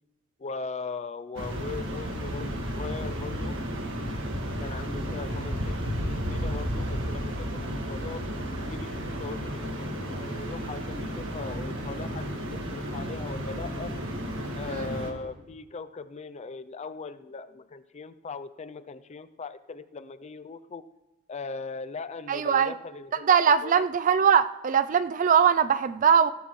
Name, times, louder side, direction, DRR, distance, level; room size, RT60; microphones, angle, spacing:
voice 1, 0.4-3.6 4.6-8.2 8.6-13.9 14.5-20.9 21.3-23.4 23.6-23.9, left 4 dB, 30° left, 12 dB, 0.4 m, -39 dB
sound 1, 1.3-15.1, equal, 60° right, 1.8 m, -33 dB
voice 2, 22.3-22.7 23.2-26.3, right 7 dB, 40° right, 13 dB, 0.4 m, -21 dB
17.0 x 12.5 x 3.2 m, 1.1 s
head